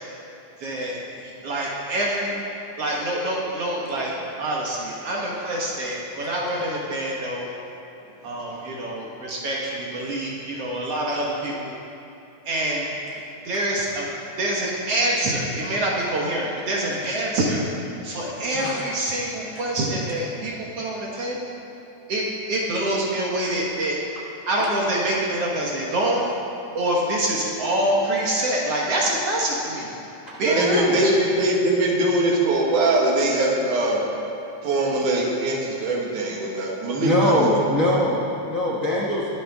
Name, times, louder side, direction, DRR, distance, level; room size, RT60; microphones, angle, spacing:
voice 1, 0.6-2.4 2.8-7.5 8.2-11.7 12.5-12.9 13.5-14.1 14.4-17.6 18.0-21.6 22.1-22.2 22.5-24.0 24.5-26.4 26.7-29.9 30.4-31.1, right 1 dB, 55° right, -3 dB, 2.1 m, -26 dB
voice 2, 30.4-34.0 34.6-37.3 37.8-37.9, right 1 dB, 75° right, -2 dB, 3.1 m, -22 dB
voice 3, 36.9-39.3, left 1 dB, 65° left, -5 dB, 0.8 m, -22 dB
22.0 x 9.3 x 3.6 m, 2.9 s
omnidirectional pair, 3.6 m